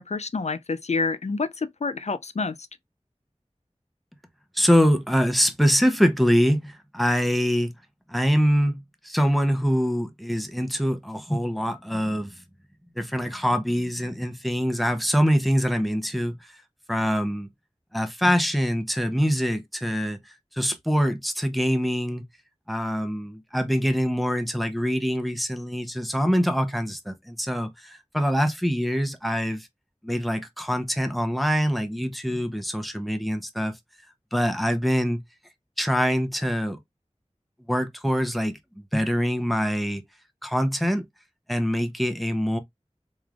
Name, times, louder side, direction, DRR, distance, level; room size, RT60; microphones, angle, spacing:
voice 1, 0.0-2.6, left 4 dB, 70° left, 0.4 m, -28 dB
voice 2, 4.5-7.7 8.1-12.3 13.0-16.6 16.9-17.5 17.9-20.2 20.5-22.2 22.7-29.7 30.0-33.7 34.3-35.2 35.8-36.8 37.7-38.6 38.9-40.0 40.4-41.1 41.5-42.6, equal, ahead, 0.8 m, -24 dB
3.6 x 3.1 x 2.4 m
wide cardioid pair, 40°, 12 cm